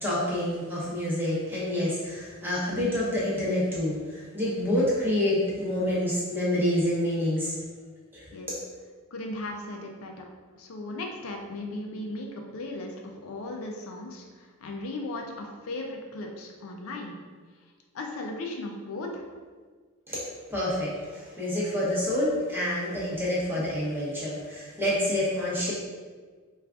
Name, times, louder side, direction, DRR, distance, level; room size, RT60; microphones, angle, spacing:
voice 1, 0.0-7.5 8.1-8.2 20.1-20.2 20.5-25.7, left 1 dB, 10° right, -7 dB, 0.8 m, -27 dB
voice 2, 9.1-10.2 10.6-17.2 17.9-19.2, left 2 dB, 65° left, 1 dB, 0.4 m, -37 dB
4.6 x 2.3 x 2.3 m, 1.5 s
head